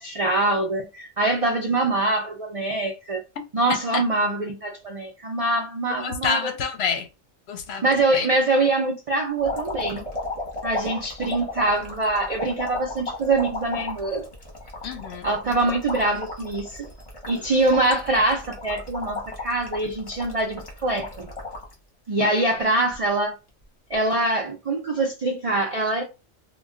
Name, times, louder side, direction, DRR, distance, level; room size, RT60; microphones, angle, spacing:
voice 1, 0.0-3.2 3.5-6.6 7.8-10.1 10.6-14.3 15.2-16.9 17.3-21.3 22.1-23.4 23.9-26.0, right 2 dB, 70° right, 0.3 m, -24 dB
voice 2, 3.7-4.0 6.0-7.1 7.5-8.3 14.8-15.3, left 6 dB, 65° left, 0.7 m, -28 dB
sound 1, 9.4-21.7 22.2-23.0 23.9-24.1, left 2 dB, 30° left, 0.8 m, -34 dB
2.2 x 2.2 x 3.6 m
omnidirectional pair, 1.3 m